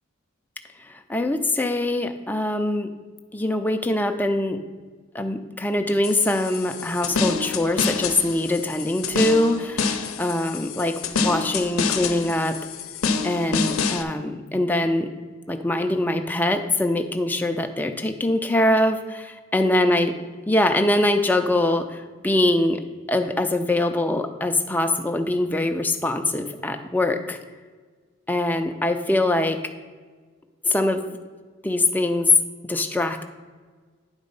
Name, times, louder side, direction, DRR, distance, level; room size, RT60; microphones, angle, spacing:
voice 1, 0.8-2.9 3.3-4.6 5.1-12.6 13.2-15.1 15.5-20.2 20.5-22.8 23.1-27.4 28.3-29.6 30.6-31.1 31.6-32.3 32.7-33.3, left 1 dB, 10° left, 5 dB, 0.4 m, -23 dB
sound 1, 6.0-14.0, left 5 dB, 90° left, 0.7 m, -27 dB
9.7 x 4.1 x 5.4 m, 1.4 s
head